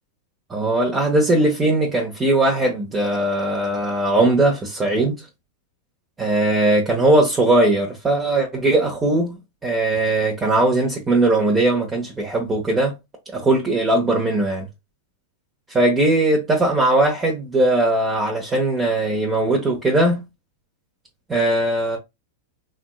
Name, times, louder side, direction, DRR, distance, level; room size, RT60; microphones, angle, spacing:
voice 1, 0.5-5.2 6.2-13.0 13.3-14.7 15.7-20.2 21.3-22.0, right 2 dB, 20° right, 1.0 m, -19 dB
3.4 x 2.9 x 2.2 m
hypercardioid pair, 115°, 0 cm